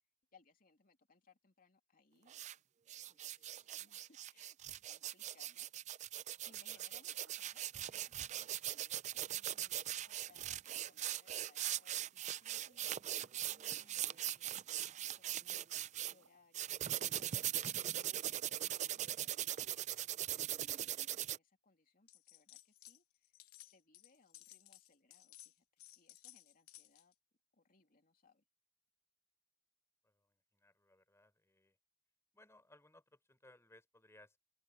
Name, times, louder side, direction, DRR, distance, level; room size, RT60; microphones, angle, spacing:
voice 1, 0.3-2.4 3.1-6.2 6.4-27.1 27.5-28.4, left 4 dB, 45° left, 2.9 m, -71 dB
sound 1, 2.3-2.5 2.9-16.1 16.5-21.4, right 12 dB, 35° right, 0.3 m, -40 dB
sound 2, 7.0-13.7 14.0-14.5 14.8-16.5 16.8-19.0, right 3 dB, 70° right, 4.5 m, -78 dB
sound 3, 22.1-23.0 23.2-27.1, left 15 dB, 90° left, 0.9 m, -59 dB
voice 2, 30.0-31.8 32.3-34.4, left 1 dB, 15° left, 4.2 m, -65 dB
open air
head